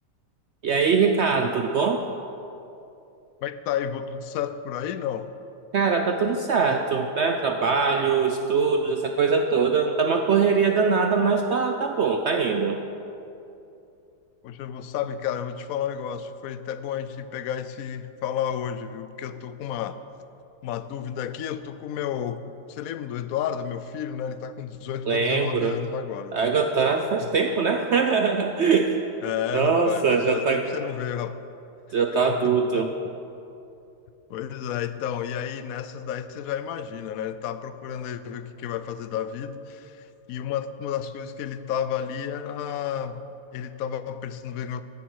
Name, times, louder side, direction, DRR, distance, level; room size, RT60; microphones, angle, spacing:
voice 1, 0.6-2.0 5.7-12.8 25.1-25.7 26.3-29.0 29.5-30.6 31.9-32.9, right 5 dB, 75° right, 5 dB, 0.6 m, -22 dB
voice 2, 3.4-5.3 14.4-20.0 20.6-22.4 22.7-26.6 27.2-27.3 29.2-31.4 32.4-33.1 34.3-43.2 43.5-44.8, left 9 dB, 70° left, 12 dB, 0.9 m, -31 dB
14.5 x 10.5 x 4.7 m, 2.7 s
omnidirectional pair, 1.9 m